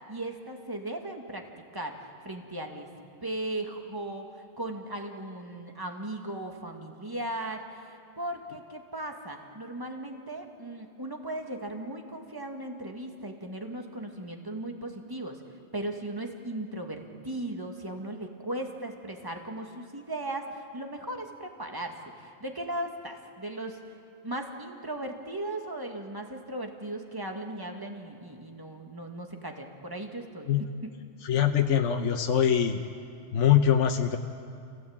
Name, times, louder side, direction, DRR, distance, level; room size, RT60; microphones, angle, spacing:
voice 1, 0.1-1.4 1.7-2.9 3.2-15.4 15.7-23.8 24.2-30.9, right 1 dB, 15° right, 3 dB, 2.1 m, -37 dB
voice 2, 31.2-32.8 33.3-34.2, left 9 dB, 70° left, 5 dB, 1.3 m, -23 dB
28.0 x 17.5 x 8.9 m, 2.5 s
omnidirectional pair, 1.3 m